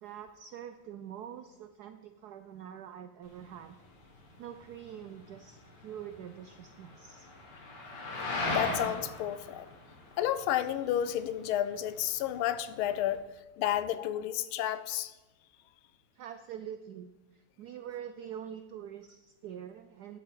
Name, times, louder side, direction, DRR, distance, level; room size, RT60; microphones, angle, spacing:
voice 1, 0.0-3.7 4.4-7.3 16.2-20.2, right 9 dB, 85° right, 9 dB, 0.8 m, -45 dB
sound 1, 3.2-13.2, left 2 dB, 55° left, 2.2 m, -40 dB
voice 2, 8.5-9.7 10.2-13.2 13.6-15.1, left 11 dB, 85° left, 14 dB, 1.4 m, -31 dB
11.5 x 7.3 x 4.7 m, 1.1 s
omnidirectional pair, 2.3 m